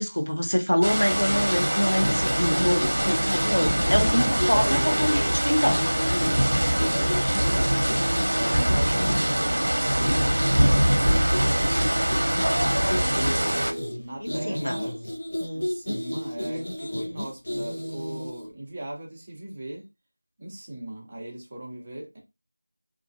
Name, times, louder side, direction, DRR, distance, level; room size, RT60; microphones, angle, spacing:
voice 1, 0.0-5.8 8.9-9.2 14.2-14.8, equal, 90° left, 0.6 m, -25 dB
sound 1, 0.8-13.7, equal, 65° right, 0.6 m, -23 dB
sound 2, 1.4-18.5, equal, 35° left, 0.6 m, -32 dB
voice 2, 6.8-7.9 8.3-11.6 12.4-13.4 14.0-15.0 15.5-19.8 20.4-22.2, right 1 dB, 20° right, 0.5 m, -38 dB
2.4 x 2.1 x 2.5 m
figure-of-eight pair, 175°, 0 cm